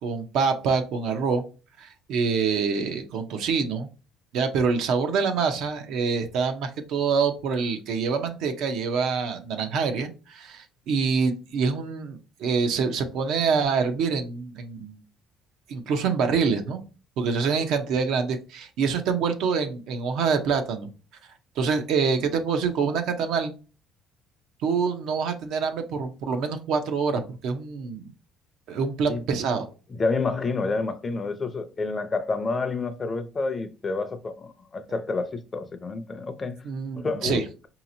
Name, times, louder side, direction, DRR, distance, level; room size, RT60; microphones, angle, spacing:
voice 1, 0.0-1.4 1.8-3.9 4.3-15.0 15.7-16.8 17.2-20.9 21.6-23.5 24.6-28.1 28.7-29.7 36.6-37.4, right 5 dB, 70° right, 0.7 m, -26 dB
voice 2, 29.9-36.6 37.0-37.7, left 3 dB, 25° left, 0.5 m, -29 dB
4.9 x 2.9 x 2.7 m
cardioid pair, 140°, 0 cm